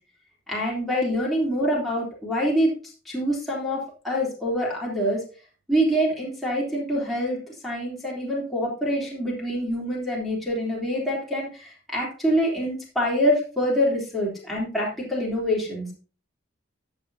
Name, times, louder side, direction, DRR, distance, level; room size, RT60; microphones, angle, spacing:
voice 1, 0.5-2.8 3.0-5.2 5.7-15.9, equal, ahead, -6 dB, 3.4 m, -25 dB
14.5 x 7.2 x 2.8 m, 0.36 s
head